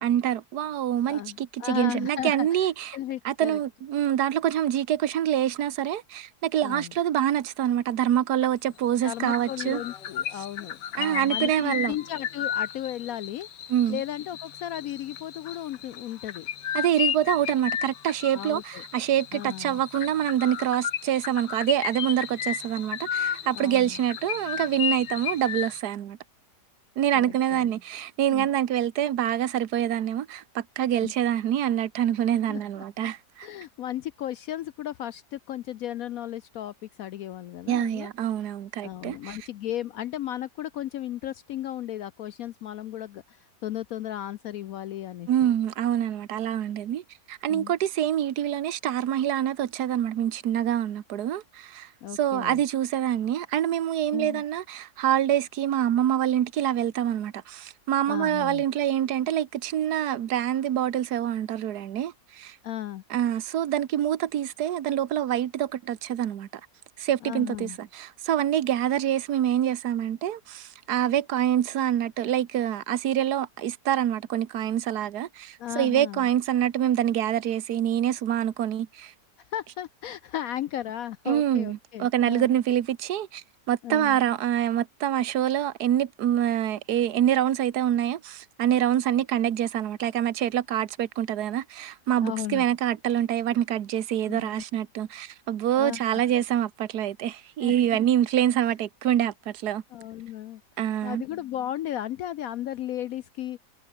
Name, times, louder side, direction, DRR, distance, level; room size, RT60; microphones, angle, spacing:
voice 1, 0.0-3.0 3.2-9.8 10.9-12.0 13.7-14.0 16.7-26.2 27.0-33.5 37.7-39.4 45.3-47.0 47.3-51.9 52.2-62.6 63.1-66.5 67.0-79.1 81.3-99.8 100.8-101.2, right 11 dB, 70° right, 1.5 m, -26 dB
voice 2, 1.1-3.6 6.6-6.9 9.0-16.5 18.3-18.8 19.3-19.8 23.5-24.0 27.1-27.7 28.3-28.5 31.0-31.1 32.5-32.8 33.4-38.1 38.8-45.5 47.5-47.7 52.0-52.6 54.1-54.4 58.1-58.6 62.6-63.0 67.2-67.8 75.6-76.3 79.5-82.5 83.8-84.2 92.2-92.7 94.3-94.5 95.8-96.2 97.6-98.0 99.9-100.6 101.0-103.6, left 12 dB, 70° left, 0.9 m, -35 dB
sound 1, 8.4-8.7 9.0-25.8, left 9 dB, 85° left, 1.9 m, -34 dB
omnidirectional pair, 1.8 m